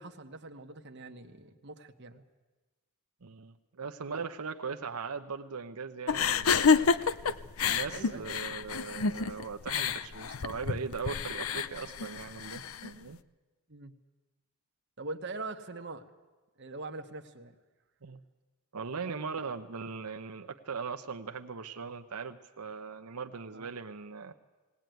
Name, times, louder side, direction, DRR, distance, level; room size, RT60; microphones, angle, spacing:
voice 1, 0.0-2.2 7.9-8.3 13.7-13.9 15.0-16.0 16.6-17.5 23.5-23.7, right 3 dB, 50° right, 5 dB, 1.3 m, -42 dB
voice 2, 3.2-6.9 7.6-13.2 18.0-18.2 18.7-24.3, right 5 dB, 85° right, 6 dB, 0.9 m, -39 dB
sound 1, 6.1-12.9, left 5 dB, 70° left, 0.6 m, -29 dB
19.0 x 18.5 x 9.2 m, 1.2 s
head